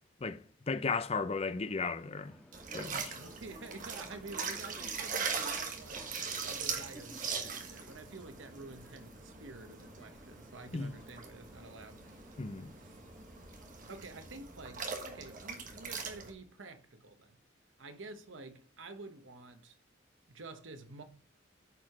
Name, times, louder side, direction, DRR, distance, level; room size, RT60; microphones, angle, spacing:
voice 1, 0.7-2.4 2.7-3.1 10.7-10.9 12.4-12.7, left 4 dB, 30° left, 0.5 m, -35 dB
sound 1, 1.6-13.9, equal, 5° left, 1.6 m, -56 dB
sound 2, 2.5-16.3, right 5 dB, 45° right, 1.4 m, -41 dB
voice 2, 3.1-12.3 12.8-13.0 13.9-17.4 17.8-19.8 20.3-21.0, right 3 dB, 85° right, 1.0 m, -49 dB
9.8 x 4.8 x 4.9 m
head